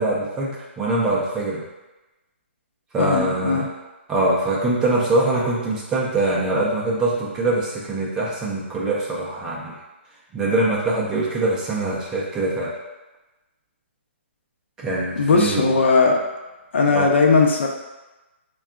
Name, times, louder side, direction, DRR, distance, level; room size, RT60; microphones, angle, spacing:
voice 1, 0.0-1.6 2.9-3.7 4.1-9.7 10.3-12.7 14.8-15.7 16.9-17.1, right 2 dB, 10° right, -5 dB, 0.4 m, -23 dB
voice 2, 3.0-3.7 15.2-16.2 16.7-17.7, left 4 dB, 65° left, 1 dB, 0.6 m, -18 dB
3.6 x 2.3 x 3.5 m, 1.1 s
hypercardioid pair, 165°, 7 cm